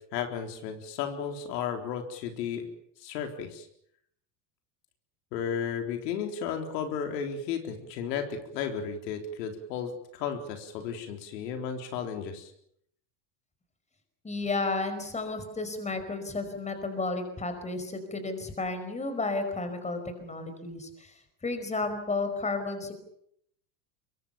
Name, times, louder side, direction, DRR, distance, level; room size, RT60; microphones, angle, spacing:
voice 1, 0.1-2.7 3.0-3.7 5.3-12.5, left 7 dB, 80° left, 4 dB, 4.1 m, -34 dB
voice 2, 14.2-22.9, left 3 dB, 15° left, 8 dB, 5.1 m, -32 dB
24.0 x 23.0 x 7.1 m, 0.72 s
supercardioid pair, 120°, 49 cm